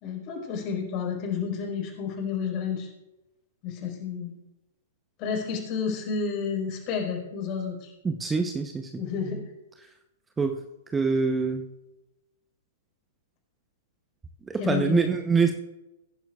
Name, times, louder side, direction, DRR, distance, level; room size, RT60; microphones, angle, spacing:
voice 1, 0.0-2.9 3.6-4.3 5.2-7.9 9.0-9.4 14.6-15.1, left 6 dB, 40° left, 1 dB, 4.5 m, -30 dB
voice 2, 8.0-9.0 10.4-10.6 10.9-11.7 14.5-15.5, right 5 dB, 15° right, 6 dB, 0.8 m, -25 dB
21.5 x 10.5 x 2.4 m, 0.99 s
figure-of-eight pair, 110°, 0 cm